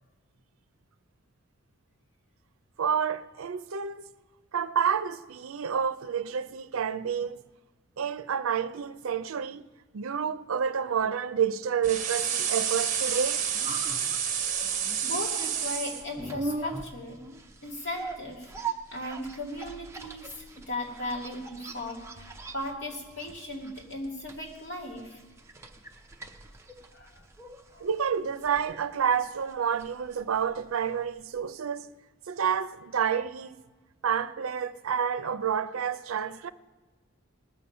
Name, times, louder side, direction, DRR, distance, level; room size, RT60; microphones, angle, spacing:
voice 1, 2.8-4.1 4.5-7.4 8.0-9.6 9.9-13.5 27.8-31.9 32.3-33.6 34.0-36.5, right 7 dB, 85° right, 0.5 m, -29 dB
sound 1, 11.8-16.0, right 8 dB, 40° right, 1.0 m, -29 dB
sound 2, 13.1-31.1 31.4-31.5, right 3 dB, 15° right, 0.6 m, -42 dB
voice 2, 14.4-17.2 17.6-18.5 18.9-25.2 26.9-27.2 27.7-27.9, left 1 dB, 55° left, 2.7 m, -37 dB
19.5 x 7.0 x 5.5 m
head